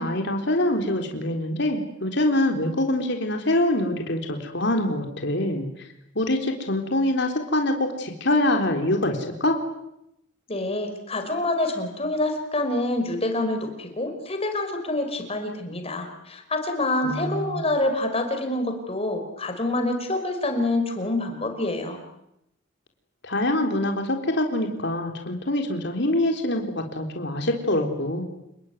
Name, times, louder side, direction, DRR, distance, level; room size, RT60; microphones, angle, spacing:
voice 1, 0.0-5.7 6.1-9.6 17.0-17.6 23.2-28.2, left 1 dB, 55° left, 3 dB, 3.9 m, -24 dB
voice 2, 10.5-22.0, left 2 dB, 30° left, 6 dB, 5.0 m, -26 dB
29.0 x 20.0 x 9.6 m, 0.83 s
head